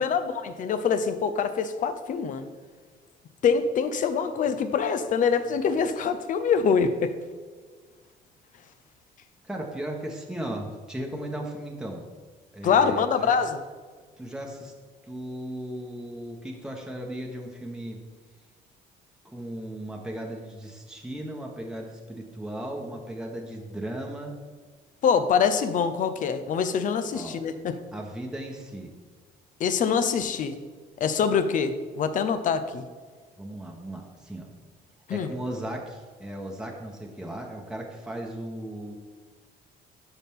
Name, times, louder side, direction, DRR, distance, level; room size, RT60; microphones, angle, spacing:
voice 1, 0.0-2.5 3.4-7.1 12.6-13.6 25.0-27.8 29.6-30.6 31.0-32.8 35.1-35.3, left 6 dB, 50° left, 10 dB, 0.7 m, -24 dB
voice 2, 9.4-12.1 12.5-13.3 14.2-14.7 15.0-18.0 19.2-24.4 27.1-27.4 27.9-28.9 33.4-34.5 35.1-38.9, right 1 dB, 5° right, 0 dB, 1.1 m, -36 dB
12.0 x 4.1 x 3.6 m, 1.5 s
cardioid pair, 110°, 17 cm